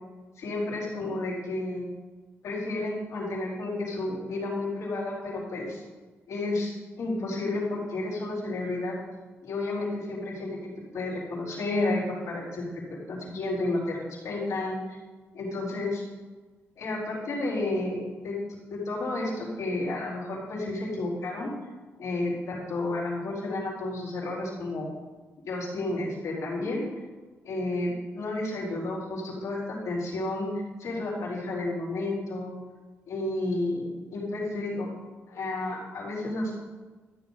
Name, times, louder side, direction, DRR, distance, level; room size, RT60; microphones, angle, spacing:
voice 1, 0.4-1.9 2.4-5.8 6.3-8.9 9.4-10.6 10.9-15.0 15.3-16.0 16.8-18.3 18.7-21.5 22.0-24.9 25.4-26.8 27.4-30.5 30.8-32.5 33.1-34.9 35.3-36.6, left 2 dB, 80° left, -5 dB, 4.1 m, -31 dB
13.5 x 7.5 x 4.0 m, 1.3 s
cardioid pair, 60°, 5 cm